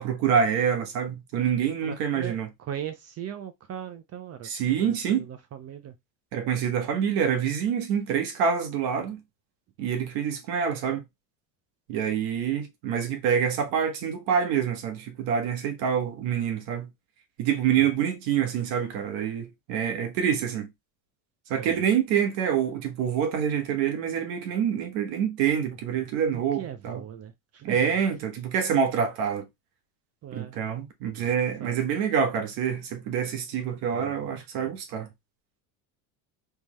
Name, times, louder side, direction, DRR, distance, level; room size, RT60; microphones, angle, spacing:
voice 1, 0.0-2.5 4.4-5.3 6.3-9.2 9.8-11.0 11.9-16.9 17.4-20.7 21.5-27.0 27.6-29.5 30.3-35.1, right 8 dB, 70° right, 1.5 m, -26 dB
voice 2, 1.8-4.5 4.8-6.0 21.5-21.7 26.0-26.1 26.3-27.8 30.2-30.6 31.1-31.3 31.6-31.8 33.9-34.3, right 9 dB, 35° right, 0.5 m, -39 dB
3.6 x 3.3 x 3.1 m
cardioid pair, 135°, 47 cm